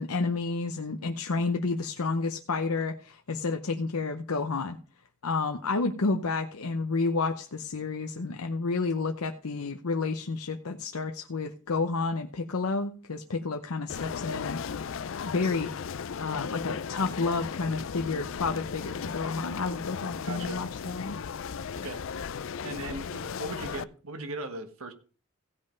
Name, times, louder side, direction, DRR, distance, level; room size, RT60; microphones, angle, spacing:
voice 1, 0.0-4.8 5.2-14.6 15.2-15.7 16.2-21.2, left 3 dB, 85° left, 5 dB, 0.8 m, -30 dB
sound 1, 13.9-23.8, left 6 dB, 65° left, 0.4 m, -36 dB
voice 2, 20.2-20.6 21.7-22.0 22.6-24.9, right 2 dB, 80° right, 7 dB, 1.4 m, -38 dB
16.0 x 5.4 x 5.2 m, 0.39 s
head